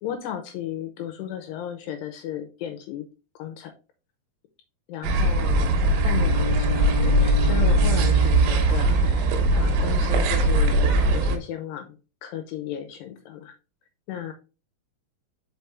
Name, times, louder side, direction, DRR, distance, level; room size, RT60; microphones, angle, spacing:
voice 1, 0.0-3.0 3.4-3.7 4.9-5.7 6.0-12.0 12.2-13.5 14.1-14.3, left 10 dB, 80° left, 5 dB, 2.6 m, -34 dB
sound 1, 5.0-11.4, right 2 dB, 80° right, 3.2 m, -20 dB
Bowed string instrument, 5.9-8.9, left 4 dB, 5° right, 2.5 m, -33 dB
5.8 x 5.4 x 3.4 m, 0.32 s
omnidirectional pair, 5.3 m